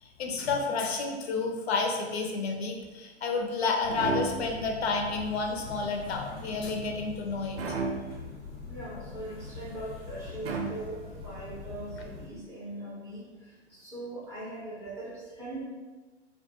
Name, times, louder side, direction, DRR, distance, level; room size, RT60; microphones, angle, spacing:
voice 1, 0.0-7.6, left 4 dB, 65° left, 2 dB, 0.5 m, -30 dB
sound 1, 3.8-12.3, left 4 dB, 90° left, 1.0 m, -43 dB
sound 2, 3.9-4.8 7.6-8.3 10.4-11.2, right 4 dB, 60° right, 0.5 m, -33 dB
voice 2, 8.7-13.2 13.7-15.6, right 2 dB, 10° right, -9 dB, 0.3 m, -40 dB
2.2 x 2.2 x 2.7 m, 1.3 s
figure-of-eight pair, 110°, 35 cm